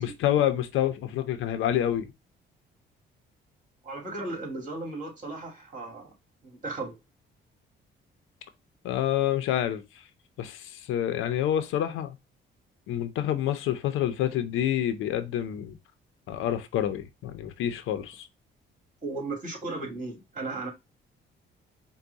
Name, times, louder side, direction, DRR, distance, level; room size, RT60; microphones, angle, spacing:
voice 1, 0.0-2.1 8.8-9.8 10.4-12.2 12.9-15.8 16.3-18.3, left 11 dB, 90° left, 0.7 m, -28 dB
voice 2, 3.8-6.1 6.4-7.0 19.0-20.7, right 2 dB, 40° right, 2.4 m, -35 dB
4.7 x 2.3 x 4.0 m
cardioid pair, 90°, 20 cm